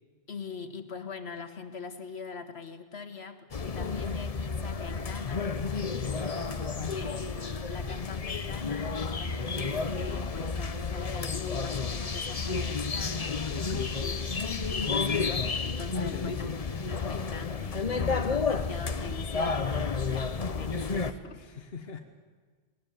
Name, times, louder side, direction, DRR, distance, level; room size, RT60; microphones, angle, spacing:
voice 1, 0.3-5.5 5.7-6.6 6.9-13.5 14.0-14.1 14.7-21.4, left 5 dB, 85° left, 8 dB, 1.8 m, -42 dB
sound 1, 3.5-21.1, left 4 dB, 40° left, 0.9 m, -31 dB
sound 2, 6.3-6.6 8.3-8.7 9.6-9.9, equal, 65° right, 6.0 m, -59 dB
voice 2, 13.5-14.0 15.9-16.6 21.3-22.0, left 5 dB, 70° left, 5 dB, 1.3 m, -41 dB
19.5 x 19.5 x 9.2 m, 1.5 s
omnidirectional pair, 1.1 m